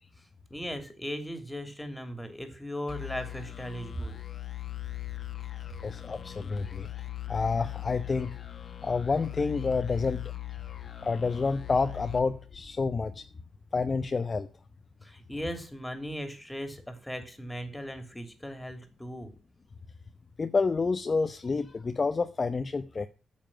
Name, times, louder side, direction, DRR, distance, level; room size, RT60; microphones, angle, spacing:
voice 1, 0.5-4.2 15.0-19.3, equal, 5° left, 3.0 m, -37 dB
sound 1, 2.9-13.2, left 15 dB, 50° left, 1.5 m, -40 dB
voice 2, 5.8-8.4 8.8-10.3 11.0-13.2 13.7-14.5 20.4-23.1, left 4 dB, 35° left, 0.8 m, -29 dB
9.0 x 7.4 x 8.8 m
cardioid pair, 90°, 0 cm